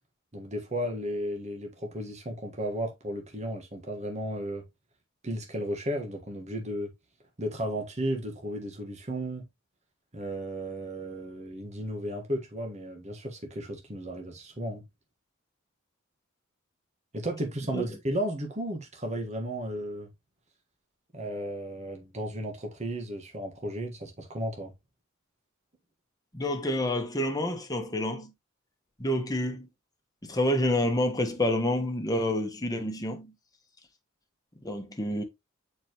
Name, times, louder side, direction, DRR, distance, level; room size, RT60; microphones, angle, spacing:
voice 1, 0.3-4.6 5.2-6.9 7.4-9.4 10.1-14.8 17.1-20.1 21.1-24.7, right 1 dB, 35° right, 1.5 m, -34 dB
voice 2, 26.3-28.3 29.0-29.7 30.2-33.3 34.6-35.2, left 1 dB, 20° left, 1.3 m, -28 dB
7.4 x 4.6 x 3.0 m
head